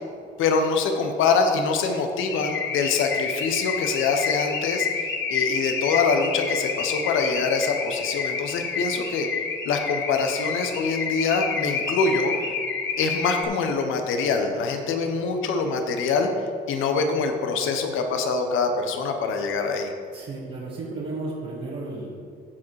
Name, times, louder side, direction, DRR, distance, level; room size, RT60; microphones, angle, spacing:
voice 1, 0.4-4.9 5.3-9.3 9.6-12.3 13.0-16.3 16.7-19.9, left 4 dB, 90° left, 5 dB, 1.0 m, -24 dB
Car / Alarm, 2.3-13.4, left 5 dB, 70° left, 1.2 m, -29 dB
voice 2, 20.1-22.2, right 2 dB, 60° right, -6 dB, 1.8 m, -33 dB
14.5 x 5.0 x 4.8 m, 2.3 s
cardioid pair, 90°, 20 cm